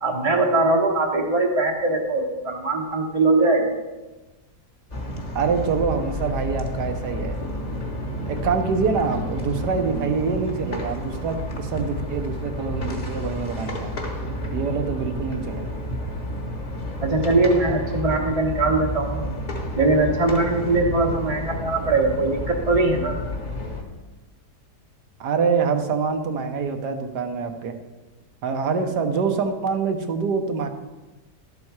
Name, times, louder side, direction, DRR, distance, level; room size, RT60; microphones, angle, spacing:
voice 1, 0.0-3.7 17.0-19.3 19.8-23.1, right 2 dB, 30° right, -2 dB, 0.8 m, -21 dB
sound 1, 4.9-23.8, left 1 dB, 30° left, 1.2 m, -30 dB
voice 2, 5.3-7.4 8.3-13.9 14.5-15.7 25.2-27.8 28.4-30.7, right 5 dB, 80° right, 6 dB, 1.5 m, -25 dB
12.0 x 7.5 x 4.7 m, 1.1 s
omnidirectional pair, 1.8 m